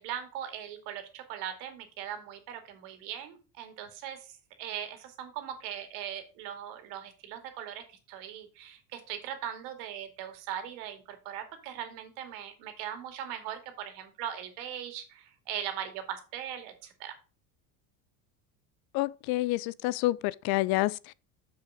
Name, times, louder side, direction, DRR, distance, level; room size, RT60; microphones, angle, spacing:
voice 1, 0.0-17.2, right 10 dB, 65° right, 2.4 m, -40 dB
voice 2, 18.9-21.1, left 18 dB, 55° left, 0.6 m, -28 dB
7.1 x 6.4 x 4.9 m
hypercardioid pair, 85°, 45 cm